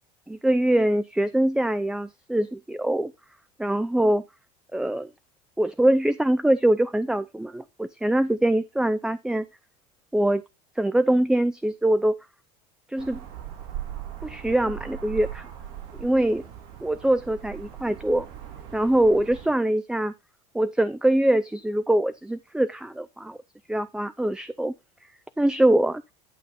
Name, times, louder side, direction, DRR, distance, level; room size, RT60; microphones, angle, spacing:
voice 1, 0.3-3.1 3.6-4.2 4.7-5.1 5.6-9.5 10.1-10.4 10.8-12.2 12.9-13.2 14.2-15.5 16.0-16.4 16.8-18.3 18.7-20.1 20.5-23.4 23.7-24.7 25.4-26.0, right 1 dB, 5° right, 13 dB, 0.4 m, -23 dB
sound 1, 13.0-19.5, right 10 dB, 70° right, 2.9 m, -39 dB
11.0 x 5.3 x 4.2 m, 0.25 s
supercardioid pair, 110°, 18 cm